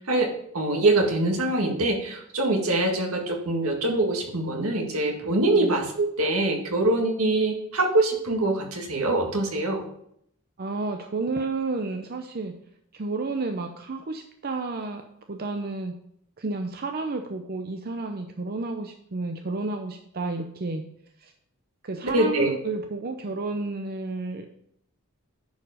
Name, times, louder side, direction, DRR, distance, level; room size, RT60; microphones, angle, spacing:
voice 1, 0.1-9.9 22.1-22.5, right 2 dB, 75° right, 1 dB, 1.9 m, -24 dB
voice 2, 10.6-12.5 12.9-15.0 15.3-15.9 16.4-20.8 21.2-21.3 21.8-24.5, right 3 dB, 45° right, 5 dB, 0.6 m, -31 dB
10.5 x 4.8 x 5.0 m, 0.70 s
head